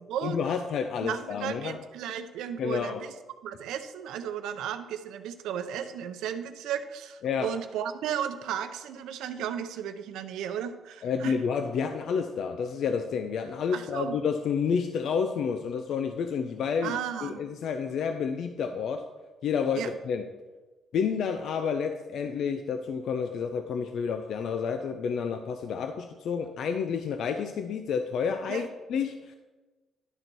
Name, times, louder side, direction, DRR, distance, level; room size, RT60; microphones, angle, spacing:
voice 1, 0.2-1.8 2.6-3.0 7.2-7.5 11.0-19.1 19.4-20.2 20.9-29.3, left 6 dB, 70° left, 7 dB, 0.5 m, -30 dB
voice 2, 1.0-3.1 3.4-11.3 13.7-14.2 16.8-17.4 19.8-19.9 28.5-28.6, right 9 dB, 90° right, 9 dB, 0.6 m, -34 dB
11.0 x 4.0 x 6.1 m, 1.2 s
cardioid pair, 90°, 0 cm